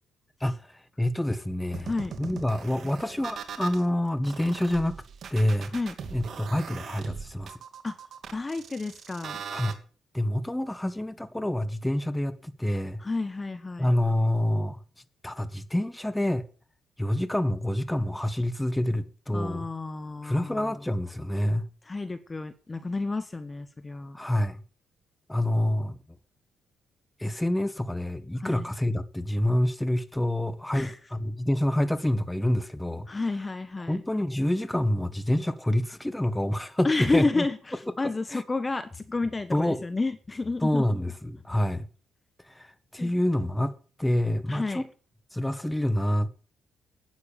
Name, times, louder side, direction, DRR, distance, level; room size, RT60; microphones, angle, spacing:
voice 1, 0.4-1.9 2.2-5.0 5.3-5.7 6.1-7.6 9.5-9.8 10.1-13.0 13.8-14.8 15.2-16.4 17.0-19.7 20.2-21.7 24.1-24.6 25.3-26.0 27.2-33.1 33.9-37.4 38.3-38.4 39.5-39.8 40.6-41.9 42.4-44.9 45.3-46.3, left 1 dB, 5° left, 1.4 m, -27 dB
sound 1, 1.7-3.8 4.2-9.7, right 6 dB, 60° right, 2.4 m, -40 dB
voice 2, 8.3-9.4 13.0-13.9 19.3-20.8 21.9-24.2 28.3-28.6 30.7-31.0 33.1-34.0 36.8-40.8 43.0-43.1 44.5-44.8, left 3 dB, 25° left, 1.2 m, -30 dB
11.5 x 9.5 x 6.9 m
cardioid pair, 90°, 0 cm